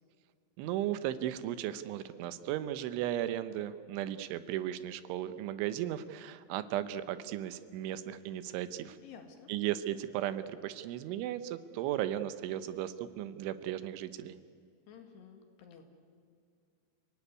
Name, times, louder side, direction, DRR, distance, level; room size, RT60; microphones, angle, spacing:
voice 1, 0.6-9.0 9.5-14.4, right 12 dB, 80° right, 12 dB, 3.2 m, -36 dB
voice 2, 9.0-9.5 14.9-15.8, left 7 dB, 65° left, 5 dB, 3.8 m, -52 dB
29.0 x 18.0 x 9.7 m, 2.2 s
omnidirectional pair, 5.6 m